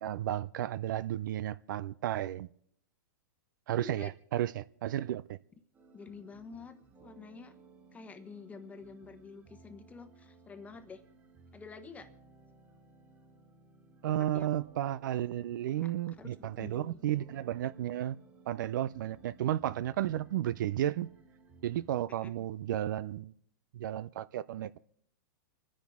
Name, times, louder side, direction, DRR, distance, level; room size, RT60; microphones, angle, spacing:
voice 1, 0.0-2.5 3.7-5.4 14.0-18.2 18.5-21.1 21.6-23.3 23.7-24.8, right 12 dB, 65° right, 0.5 m, -33 dB
voice 2, 3.8-4.1 5.9-7.6 7.9-11.0 11.5-12.1 14.1-14.5 15.7-15.9 16.2-17.0 22.2-22.3, left 5 dB, 15° left, 1.1 m, -48 dB
sound 1, 5.7-22.0, right 4 dB, 15° right, 2.8 m, -59 dB
27.5 x 10.0 x 3.6 m
hypercardioid pair, 135°, 11 cm